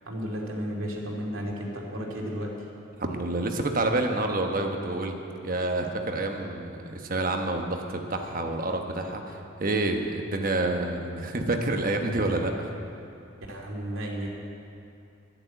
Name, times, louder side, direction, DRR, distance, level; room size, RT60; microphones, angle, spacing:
voice 1, 0.0-2.5 13.5-14.3, equal, 75° right, -2 dB, 2.6 m, -33 dB
voice 2, 3.0-5.2 5.4-12.7, right 2 dB, 40° right, 4 dB, 1.1 m, -28 dB
11.5 x 10.5 x 8.0 m, 2.6 s
head